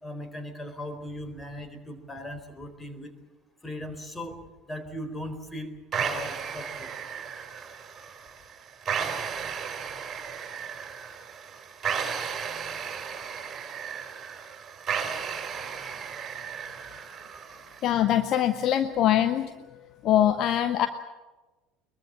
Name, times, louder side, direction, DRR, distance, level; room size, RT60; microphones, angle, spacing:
voice 1, 0.0-3.1 3.6-4.4 4.7-6.9, left 1 dB, 15° left, 9 dB, 4.1 m, -38 dB
sound 1, 5.9-17.9, right 7 dB, 30° right, 4.3 m, -34 dB
voice 2, 17.8-19.5 20.0-20.9, left 11 dB, 45° left, 9 dB, 1.1 m, -23 dB
22.5 x 22.0 x 7.6 m, 1.1 s
figure-of-eight pair, 65°, 0 cm